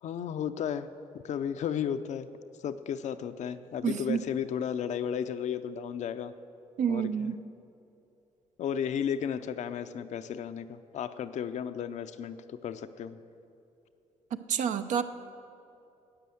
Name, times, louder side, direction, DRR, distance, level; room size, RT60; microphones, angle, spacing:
voice 1, 0.0-0.9 1.2-2.3 2.6-6.3 6.9-7.3 8.6-13.2, left 8 dB, 70° left, 10 dB, 0.6 m, -34 dB
voice 2, 3.8-4.2 6.8-7.3 14.5-15.0, right 7 dB, 75° right, 9 dB, 0.7 m, -28 dB
12.5 x 9.1 x 7.8 m, 2.7 s
cardioid pair, 115°, 13 cm